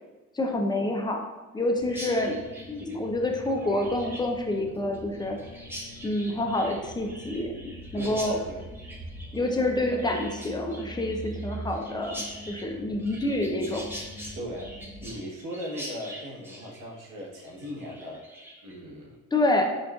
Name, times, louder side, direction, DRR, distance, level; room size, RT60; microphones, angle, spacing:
voice 1, 0.3-1.2 1.5-2.4 2.7-5.4 6.0-8.4 9.3-14.0 19.3-19.6, left 1 dB, 15° left, 2 dB, 0.5 m, -28 dB
sound 1, 1.7-15.1, equal, 45° left, 1.0 m, -43 dB
Chirp tweet, 1.9-18.8, equal, 10° right, 0.9 m, -43 dB
voice 2, 8.0-8.7 9.9-10.0 14.3-14.7 15.0-18.2 18.6-19.2, equal, 85° right, -4 dB, 1.1 m, -38 dB
5.1 x 2.4 x 2.3 m, 1.2 s
cardioid pair, 90°, 30 cm